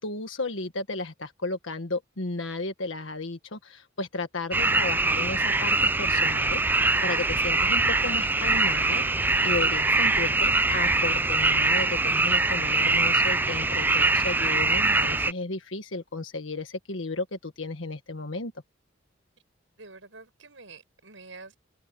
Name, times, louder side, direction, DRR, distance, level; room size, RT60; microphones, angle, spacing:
voice 1, 0.0-18.5, left 3 dB, 80° left, 1.6 m, -34 dB
sound 1, 4.5-15.3, right 3 dB, 10° right, 0.4 m, -23 dB
voice 2, 19.8-21.6, right 3 dB, 75° right, 7.0 m, -47 dB
head